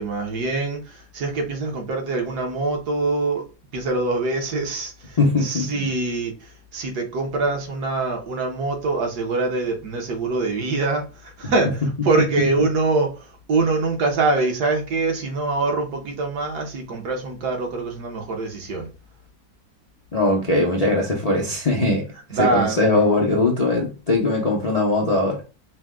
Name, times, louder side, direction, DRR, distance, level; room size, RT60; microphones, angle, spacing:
voice 1, 0.0-3.4 3.7-6.3 6.7-13.1 13.5-18.9 22.3-22.8, right 3 dB, 65° right, 1.5 m, -24 dB
voice 2, 5.2-5.7 12.1-12.2 20.1-22.0 22.4-25.4, left 2 dB, 65° left, 0.3 m, -20 dB
5.0 x 2.2 x 3.5 m
omnidirectional pair, 1.9 m